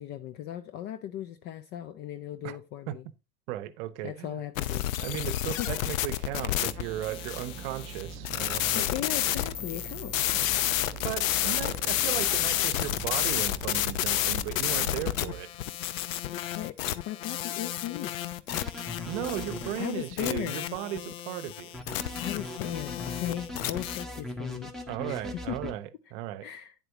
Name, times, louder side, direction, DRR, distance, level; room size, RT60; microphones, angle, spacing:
voice 1, 0.0-3.1 4.0-4.9 5.3-5.7 8.7-10.3 16.5-16.8 17.0-18.1 18.5-18.8 19.8-20.7 22.2-24.7 25.1-25.7 26.4-26.7, left 11 dB, 25° left, 0.4 m, -37 dB
voice 2, 3.5-4.4 5.0-8.9 11.0-15.5 19.1-21.8 24.9-26.5, right 13 dB, 45° right, 0.9 m, -36 dB
sound 1, 4.6-24.0, left 13 dB, 55° left, 0.7 m, -31 dB
sound 2, 6.5-15.4, right 5 dB, 20° right, 0.6 m, -43 dB
sound 3, 18.5-19.7 21.7-25.7, left 1 dB, ahead, 1.2 m, -39 dB
9.5 x 7.7 x 2.8 m
figure-of-eight pair, 80°, 48 cm